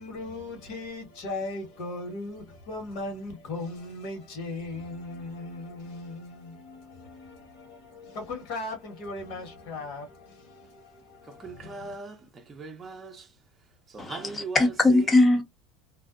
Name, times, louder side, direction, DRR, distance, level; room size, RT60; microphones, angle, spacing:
voice 1, 0.0-12.0, left 2 dB, 65° left, 1.4 m, -38 dB
voice 2, 11.3-13.3 13.9-14.6 14.9-15.1, right 4 dB, 20° right, 0.6 m, -39 dB
voice 3, 14.0-15.4, left 2 dB, 20° left, 0.7 m, -21 dB
2.5 x 2.0 x 2.4 m
supercardioid pair, 125°, 0 cm